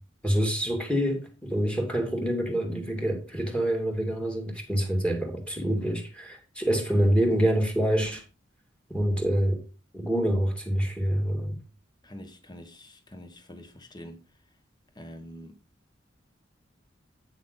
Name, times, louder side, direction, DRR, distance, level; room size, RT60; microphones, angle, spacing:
voice 1, 0.2-8.2 8.9-9.6 9.9-11.6, equal, 5° left, 2.3 m, -26 dB
voice 2, 12.0-14.2 14.9-15.6, equal, 25° left, 1.3 m, -45 dB
9.1 x 6.4 x 4.0 m
head